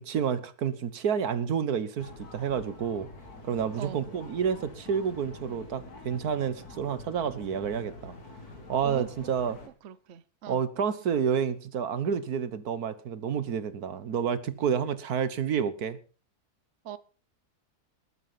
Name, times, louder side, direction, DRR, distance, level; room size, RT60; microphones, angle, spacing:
voice 1, 0.0-3.1 3.4-8.1 8.7-9.6 10.5-16.0, right 7 dB, 80° right, 1.7 m, -29 dB
sound 1, 2.0-9.7, left 2 dB, 90° left, 2.9 m, -46 dB
voice 2, 3.8-4.1 8.8-9.1 9.8-10.6 16.8-17.0, right 9 dB, 55° right, 1.1 m, -40 dB
20.0 x 8.4 x 5.8 m
omnidirectional pair, 1.6 m